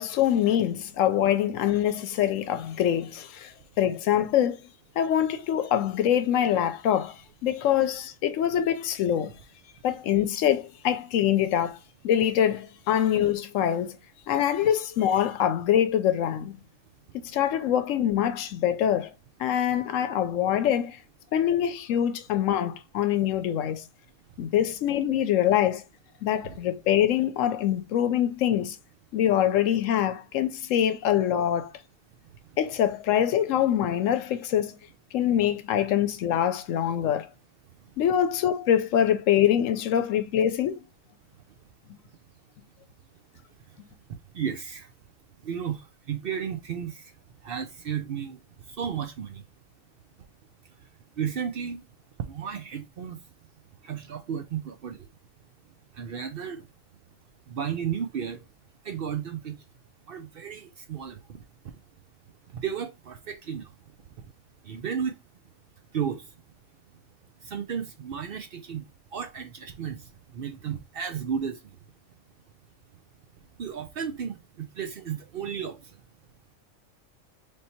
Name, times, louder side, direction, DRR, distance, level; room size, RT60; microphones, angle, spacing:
voice 1, 0.0-3.5 3.8-4.6 5.0-7.2 7.4-9.3 9.8-11.8 12.0-14.0 14.3-16.6 17.2-19.1 19.4-21.0 21.3-23.8 24.4-25.8 26.2-28.8 29.1-31.7 32.6-34.8 35.1-37.3 38.0-40.8, left 10 dB, 85° left, 1.0 m, -24 dB
voice 2, 37.7-38.0 41.3-41.4 43.5-43.8 44.1-44.9 45.4-47.2 47.4-49.4 50.8-50.9 51.2-51.8 52.2-53.2 53.8-55.1 55.6-56.7 57.5-58.5 58.8-59.6 60.1-61.8 62.5-63.8 64.2-64.3 64.6-65.2 65.9-66.3 67.4-71.8 73.6-76.0, right 8 dB, 60° right, 0.6 m, -34 dB
3.4 x 2.7 x 4.2 m
omnidirectional pair, 1.3 m